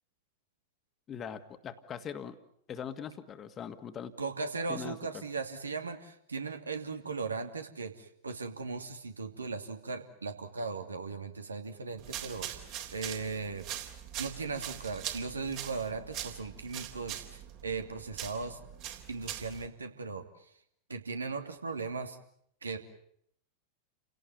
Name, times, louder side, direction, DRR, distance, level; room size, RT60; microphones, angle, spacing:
voice 1, 1.1-2.4 2.7-4.1 4.7-5.0, left 8 dB, 25° left, 11 dB, 2.0 m, -41 dB
voice 2, 4.2-13.7 14.2-18.6 19.1-20.5 20.9-22.2 22.6-22.8, right 4 dB, 75° right, 7 dB, 2.8 m, -38 dB
sound 1, 12.0-19.7, right 11 dB, 40° right, 3.7 m, -42 dB
30.0 x 18.0 x 9.6 m, 0.69 s
figure-of-eight pair, 90°, 0 cm